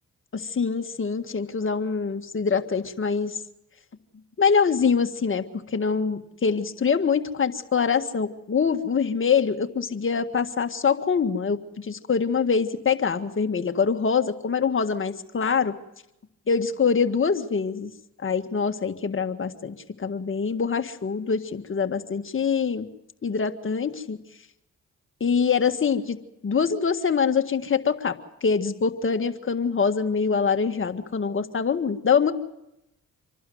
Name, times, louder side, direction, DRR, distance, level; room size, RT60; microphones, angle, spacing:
voice 1, 0.3-3.4 4.4-15.7 16.5-17.9 18.2-22.9 23.2-24.2 25.2-26.2 26.4-28.2 28.4-32.3, left 6 dB, 40° left, 7 dB, 1.8 m, -24 dB
26.0 x 12.0 x 9.4 m, 0.87 s
supercardioid pair, 55°, 32 cm